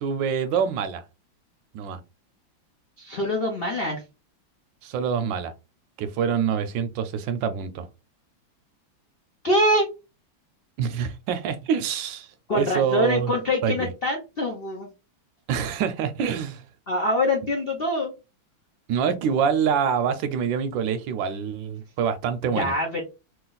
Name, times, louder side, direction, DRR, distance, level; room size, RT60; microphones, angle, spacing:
voice 1, 0.0-1.0 1.7-2.0 4.8-5.5 6.0-7.9 10.8-13.3 13.6-13.9 15.5-16.6 18.9-22.7, right 7 dB, 75° right, 1.2 m, -26 dB
voice 2, 3.0-4.0 9.4-9.9 12.5-14.9 16.9-18.1 22.4-23.0, left 1 dB, 60° left, 0.6 m, -24 dB
3.1 x 2.8 x 3.9 m
omnidirectional pair, 2.2 m